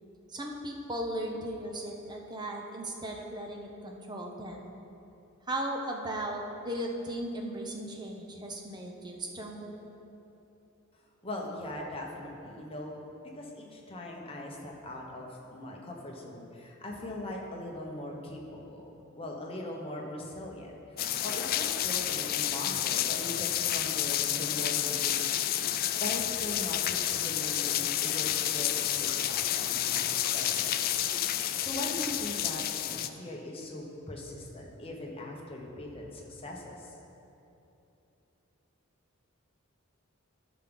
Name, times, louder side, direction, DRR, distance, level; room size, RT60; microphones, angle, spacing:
voice 1, 0.3-4.6 5.5-9.7, right 1 dB, 20° right, 1 dB, 0.7 m, -37 dB
voice 2, 11.2-13.0 13.4-20.7 21.2-25.4 26.0-30.9 31.6-37.0, left 1 dB, 25° left, -1 dB, 1.1 m, -40 dB
sound 1, 21.0-33.1, left 11 dB, 45° left, 0.3 m, -30 dB
12.5 x 5.9 x 3.9 m, 2.9 s
head